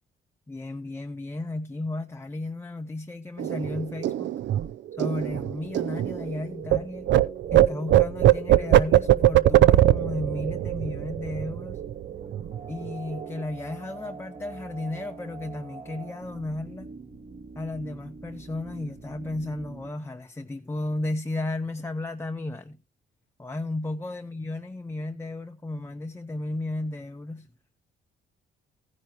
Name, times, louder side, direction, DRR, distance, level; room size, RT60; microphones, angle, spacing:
voice 1, 0.5-4.3 5.0-7.1 7.5-11.8 12.7-16.9 17.6-22.8 23.4-27.5, left 2 dB, 10° left, 0.6 m, -34 dB
sound 1, 3.4-6.8 7.1-12.0 12.3-12.6 12.9-13.4, right 13 dB, 65° right, 0.5 m, -21 dB
sound 2, 5.1-19.9, right 5 dB, 50° right, 2.1 m, -44 dB
15.0 x 10.0 x 3.0 m
cardioid pair, 90°, 20 cm